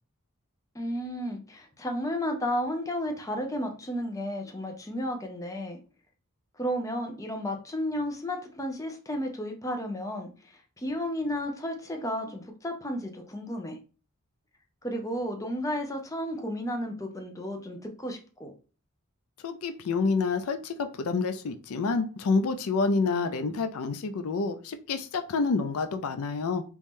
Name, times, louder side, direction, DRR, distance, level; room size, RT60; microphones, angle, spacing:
voice 1, 0.7-5.8 6.6-13.8 14.8-18.5, equal, 15° left, 4 dB, 0.5 m, -33 dB
voice 2, 19.4-26.6, left 4 dB, 85° left, 9 dB, 0.4 m, -28 dB
3.0 x 2.6 x 3.6 m, 0.36 s
head